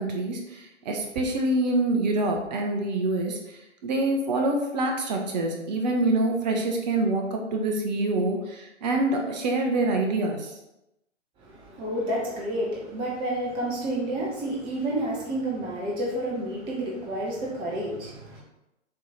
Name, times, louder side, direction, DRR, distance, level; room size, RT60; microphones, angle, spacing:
voice 1, 0.0-3.4 3.8-10.5, right 2 dB, 35° right, 2 dB, 1.0 m, -26 dB
voice 2, 11.4-18.4, right 1 dB, 15° right, -3 dB, 0.9 m, -30 dB
7.3 x 3.2 x 4.1 m, 0.89 s
figure-of-eight pair, 135°, 36 cm